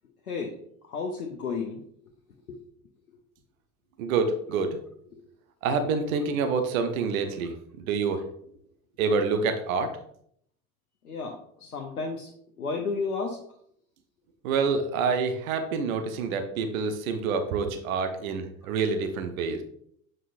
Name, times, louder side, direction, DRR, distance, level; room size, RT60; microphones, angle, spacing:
voice 1, 0.9-1.8 11.0-12.3 12.6-13.4, left 4 dB, 85° left, 1 dB, 0.8 m, -32 dB
voice 2, 4.0-4.8 5.6-8.2 9.0-10.0 14.4-19.6, right 4 dB, 70° right, 7 dB, 0.9 m, -27 dB
7.5 x 5.3 x 2.6 m, 0.67 s
figure-of-eight pair, 65°, 43 cm